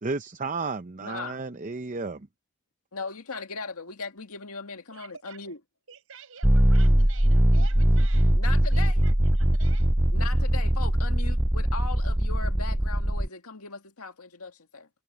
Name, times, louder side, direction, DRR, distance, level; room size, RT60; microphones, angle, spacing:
voice 1, 0.0-2.3, right 3 dB, 35° right, 0.7 m, -32 dB
voice 2, 1.0-1.4 2.9-5.6 8.3-9.1 10.1-14.9, left 4 dB, 80° left, 1.9 m, -38 dB
voice 3, 4.9-5.6 5.9-8.4 8.7-9.9, right 6 dB, 65° right, 5.5 m, -48 dB
sound 1, 6.4-13.3, right 1 dB, 5° right, 0.3 m, -21 dB
head